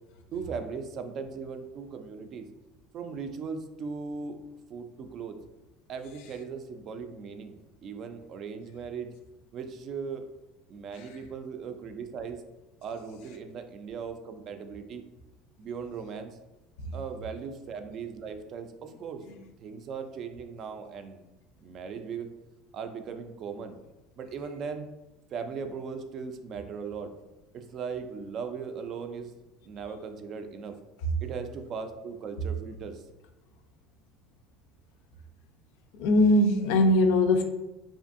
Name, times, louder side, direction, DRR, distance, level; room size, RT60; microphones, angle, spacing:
voice 1, 0.3-2.5 2.9-4.4 4.7-5.3 5.9-7.5 7.8-9.1 9.5-10.2 10.7-12.4 12.8-15.0 15.6-16.4 16.9-19.2 19.6-21.2 21.6-22.3 22.7-23.8 24.2-24.9 25.3-27.1 27.5-29.3 29.7-30.8 31.2-33.0, right 5 dB, 50° right, 7 dB, 0.3 m, -38 dB
voice 2, 36.0-37.4, left 1 dB, 75° left, 6 dB, 0.3 m, -21 dB
2.6 x 2.4 x 2.5 m, 1.0 s
supercardioid pair, 95°, 0 cm